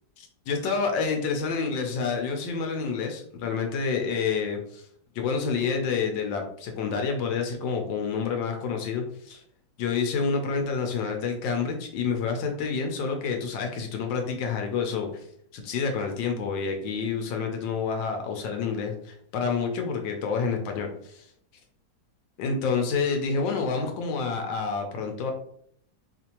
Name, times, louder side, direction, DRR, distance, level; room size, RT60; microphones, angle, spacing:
voice 1, 0.2-4.9 5.1-9.4 9.8-15.3 15.5-21.2 22.4-25.3, left 5 dB, 75° left, 3 dB, 1.3 m, -28 dB
4.4 x 2.5 x 2.8 m, 0.66 s
omnidirectional pair, 2.1 m